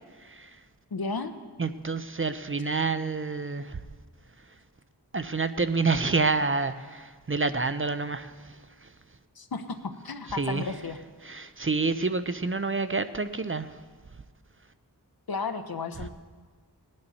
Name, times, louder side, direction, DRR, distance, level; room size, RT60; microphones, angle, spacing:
voice 1, 0.9-1.3 9.4-11.0 15.3-16.1, left 4 dB, 65° left, 9 dB, 0.9 m, -33 dB
voice 2, 1.6-3.8 5.1-8.3 10.4-10.6 11.3-13.7, right 4 dB, 30° right, 11 dB, 0.5 m, -28 dB
19.5 x 9.7 x 4.2 m, 1.5 s
wide cardioid pair, 55°, 40 cm